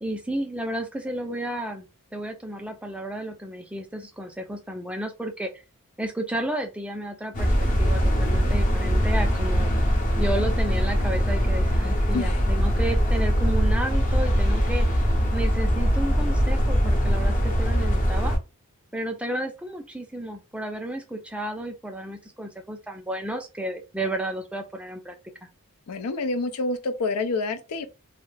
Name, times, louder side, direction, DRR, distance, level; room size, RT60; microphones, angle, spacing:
voice 1, 0.0-1.9 2.1-5.5 6.0-9.7 10.2-14.9 15.3-18.4 18.9-25.1, right 1 dB, 5° right, 0.3 m, -32 dB
sound 1, 7.3-18.4, equal, 35° left, 0.6 m, -22 dB
voice 2, 25.9-27.9, left 3 dB, 80° left, 0.5 m, -27 dB
2.3 x 2.1 x 3.1 m
head